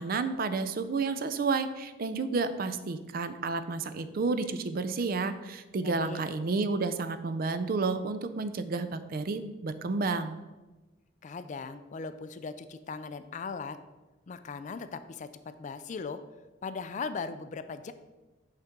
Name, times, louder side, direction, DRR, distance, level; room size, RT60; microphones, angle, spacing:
voice 1, 0.0-10.4, right 4 dB, 50° right, 11 dB, 0.4 m, -31 dB
voice 2, 5.8-6.2 11.2-13.8 14.3-15.3 15.6-16.2 16.6-17.9, left 4 dB, 40° left, 11 dB, 0.3 m, -38 dB
6.5 x 3.5 x 5.8 m, 1.1 s
head